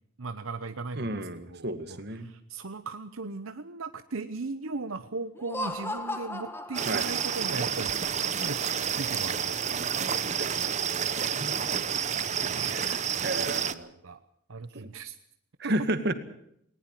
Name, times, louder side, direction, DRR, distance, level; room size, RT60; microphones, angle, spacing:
voice 1, 0.2-8.6 8.9-9.9 12.5-13.7 14.0-14.2 14.5-15.2 15.6-15.7, right 3 dB, 85° right, 10 dB, 0.9 m, -38 dB
voice 2, 1.0-2.3 6.9-7.0 10.0-11.6 13.2-13.9 14.7-14.9 15.6-16.1, right 1 dB, 55° right, 9 dB, 2.0 m, -33 dB
Laughter, 5.3-7.7, left 1 dB, 10° left, 1.6 m, -36 dB
sound 1, 6.8-13.7, right 7 dB, 35° right, 0.8 m, -29 dB
19.5 x 19.0 x 7.6 m, 0.71 s
head